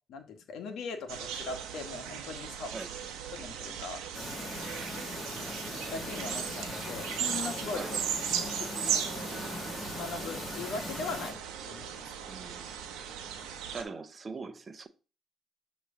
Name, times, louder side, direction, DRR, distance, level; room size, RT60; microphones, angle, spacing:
voice 1, 0.1-2.8 3.3-4.0 5.9-8.0 8.4-9.1 10.0-11.4 11.6-11.9, left 4 dB, 75° left, 1.2 m, -40 dB
sound 1, 1.1-13.8, right 8 dB, 85° right, 0.8 m, -37 dB
Chirp tweet, 4.1-11.3, left 2 dB, 25° left, 1.9 m, -40 dB
voice 2, 12.3-12.7 13.7-14.9, right 4 dB, 40° right, 0.6 m, -41 dB
6.6 x 3.1 x 4.8 m
supercardioid pair, 65°, 0 cm